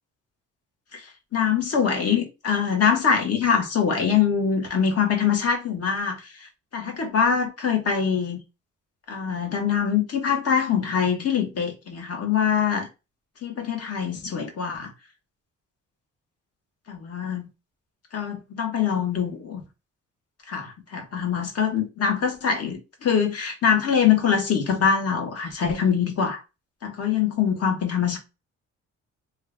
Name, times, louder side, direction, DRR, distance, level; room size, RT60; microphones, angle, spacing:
voice 1, 0.9-8.4 9.1-12.9 13.4-14.9 16.9-17.5 18.1-19.6 20.5-26.4 26.8-28.2, left 7 dB, 55° left, 1.4 m, -24 dB
3.2 x 2.5 x 3.4 m
cardioid pair, 90°, 30 cm